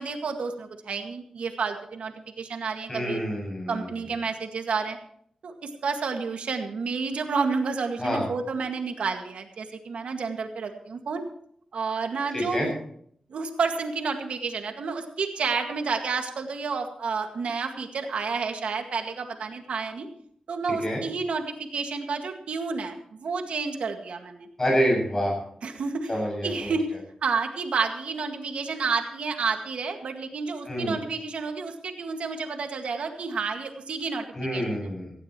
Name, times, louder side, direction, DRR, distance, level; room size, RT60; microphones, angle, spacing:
voice 1, 0.0-3.2 3.7-5.0 5.4-11.3 11.7-12.7 13.3-20.1 20.5-24.5 25.6-26.1 26.4-34.3 34.5-34.6, right 4 dB, 85° right, 4 dB, 1.9 m, -30 dB
voice 2, 2.9-3.9 8.0-8.3 12.3-12.7 20.8-21.0 24.6-25.4 26.1-26.7 30.7-31.0 34.3-35.1, equal, 25° left, 0 dB, 7.4 m, -27 dB
18.5 x 16.0 x 3.1 m, 0.63 s
wide cardioid pair, 150°, 2 cm